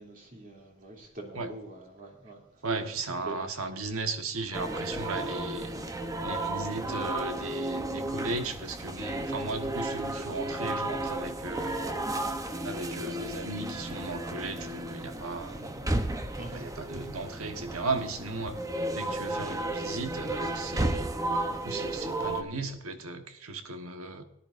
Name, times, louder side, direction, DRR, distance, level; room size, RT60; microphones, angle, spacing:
voice 1, 0.0-2.4 3.2-3.4 16.4-16.6, right 2 dB, 40° right, 0 dB, 2.9 m, -44 dB
voice 2, 2.6-5.7 6.2-11.9 12.6-15.9 16.5-18.6 18.9-21.1 21.5-24.2, right 3 dB, 85° right, 7 dB, 1.3 m, -36 dB
sound 1, 4.5-22.4, right 1 dB, 15° right, 0.8 m, -33 dB
18.0 x 11.0 x 2.6 m, 0.85 s
head